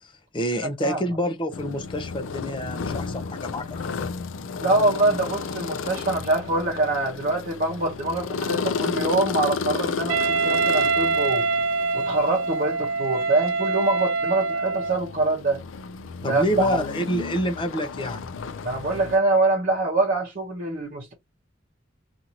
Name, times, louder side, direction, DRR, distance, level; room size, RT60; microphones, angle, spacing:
voice 1, 0.0-4.1 16.2-18.2, equal, 25° left, 0.5 m, -28 dB
voice 2, 0.6-1.0 4.6-11.5 11.9-15.6 16.2-16.7 18.6-21.1, right 2 dB, 45° right, 0.8 m, -24 dB
sound 1, 1.5-19.2, left 5 dB, 80° left, 0.4 m, -33 dB
Wind instrument woodwind instrument, 10.1-15.1, right 4 dB, 85° right, 0.4 m, -24 dB
2.7 x 2.5 x 2.7 m
head